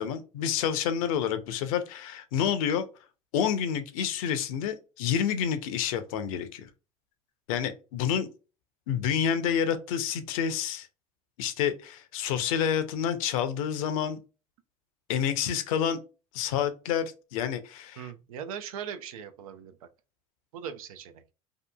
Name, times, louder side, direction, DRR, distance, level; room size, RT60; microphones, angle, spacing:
voice 1, 0.0-2.9 3.3-6.7 7.5-8.3 8.9-10.9 11.4-14.2 15.1-16.0 16.3-18.1, left 8 dB, 70° left, 0.5 m, -28 dB
voice 2, 18.0-19.9 20.5-21.3, right 8 dB, 80° right, 0.4 m, -40 dB
2.7 x 2.4 x 2.2 m
hypercardioid pair, 75°, 18 cm